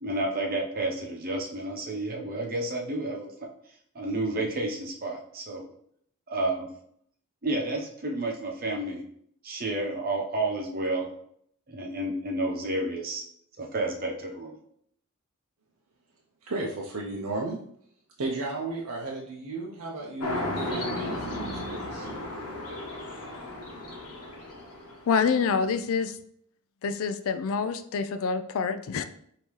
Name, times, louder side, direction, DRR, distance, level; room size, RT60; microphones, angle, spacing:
voice 1, 0.0-3.5 3.9-5.7 6.3-6.7 7.4-9.0 9.4-11.1 11.7-13.2 13.6-14.6, right 2 dB, 40° right, 0 dB, 0.8 m, -30 dB
voice 2, 16.4-17.6 18.2-22.1, right 2 dB, 80° right, -2 dB, 0.6 m, -34 dB
sound 1, 20.2-25.4, left 1 dB, 85° left, 1.1 m, -34 dB
voice 3, 25.1-26.2 26.8-29.0, left 5 dB, 65° left, 10 dB, 0.4 m, -26 dB
5.4 x 2.8 x 3.1 m, 0.67 s
head